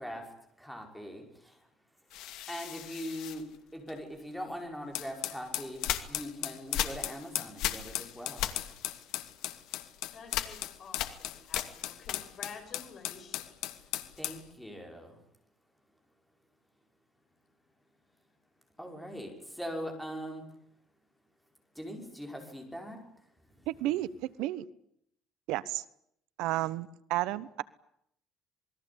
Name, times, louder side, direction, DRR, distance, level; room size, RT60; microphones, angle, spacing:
voice 1, 0.0-1.7 2.5-3.5 3.7-5.8 6.1-8.7 14.2-15.2 18.8-20.4 21.8-23.0 23.5-23.8, equal, ahead, 5.5 m, -41 dB
sound 1, 2.1-4.3 5.0-12.6 12.9-14.5, left 12 dB, 65° left, 2.4 m, -39 dB
sound 2, 4.9-14.4, left 14 dB, 80° left, 2.5 m, -37 dB
voice 2, 10.1-13.7, left 5 dB, 35° left, 7.2 m, -50 dB
voice 3, 23.7-24.6 25.5-25.8 26.4-27.6, right 15 dB, 75° right, 1.1 m, -32 dB
27.5 x 21.5 x 8.7 m
cardioid pair, 165°, 0 cm